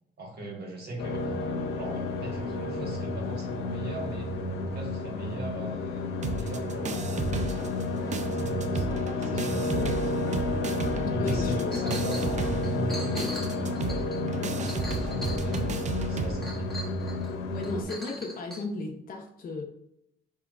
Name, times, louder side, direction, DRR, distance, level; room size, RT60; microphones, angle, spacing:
voice 1, 0.2-1.4 1.7-10.0 11.1-16.9, right 1 dB, 55° right, -1 dB, 1.3 m, -39 dB
sound 1, 1.0-17.8, left 2 dB, 85° left, 0.6 m, -31 dB
sound 2, 6.2-7.9 8.1-16.3, right 4 dB, 35° right, 0.4 m, -34 dB
voice 2, 10.9-11.6 17.5-19.6, left 3 dB, 45° left, 0 dB, 0.6 m, -35 dB
Chink clink, 11.7-12.3 12.6-15.8 16.4-17.3 17.6-18.6, left 1 dB, ahead, 1.1 m, -41 dB
4.8 x 2.9 x 2.4 m, 0.76 s
cardioid pair, 90°, 20 cm